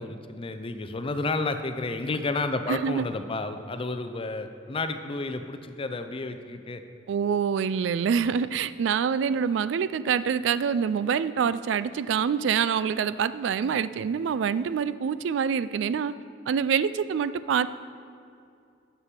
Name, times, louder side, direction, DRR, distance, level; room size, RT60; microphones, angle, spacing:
voice 1, 0.0-6.8, left 3 dB, 30° left, 9 dB, 0.5 m, -31 dB
voice 2, 2.7-3.0 7.1-16.1 16.5-17.7, right 7 dB, 80° right, 15 dB, 0.3 m, -26 dB
11.5 x 6.9 x 4.4 m, 2.4 s
head